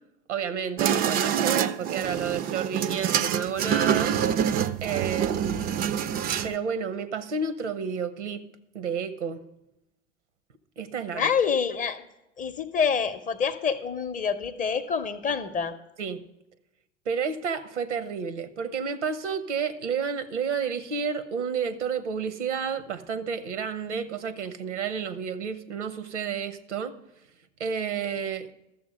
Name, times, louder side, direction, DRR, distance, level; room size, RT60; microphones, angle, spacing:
voice 1, 0.3-4.2 4.8-5.7 6.4-8.4 8.7-9.4 10.8-11.3 16.0-16.2 17.1-26.9 27.6-28.5, right 6 dB, 75° right, 14 dB, 0.9 m, -30 dB
sound 1, 0.8-6.5, right 9 dB, 25° right, 0.4 m, -26 dB
voice 2, 11.1-12.1 12.4-15.7, left 6 dB, 20° left, 9 dB, 0.7 m, -27 dB
13.0 x 7.2 x 4.9 m, 0.90 s
figure-of-eight pair, 75°, 36 cm